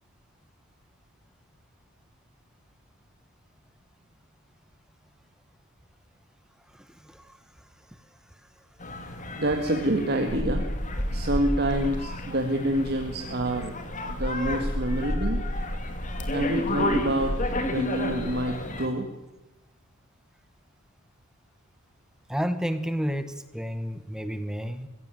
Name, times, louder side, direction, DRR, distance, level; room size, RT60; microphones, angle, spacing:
voice 1, 6.7-8.0 22.3-24.9, equal, 5° right, 11 dB, 1.0 m, -32 dB
sound 1, 8.8-18.9, left 1 dB, 35° left, 2.8 m, -30 dB
voice 2, 9.3-10.6 11.1-13.7 14.1-15.4 16.3-17.3 17.6-19.1, right 1 dB, 50° right, 4 dB, 2.0 m, -27 dB
23.0 x 16.5 x 9.3 m, 1.1 s
head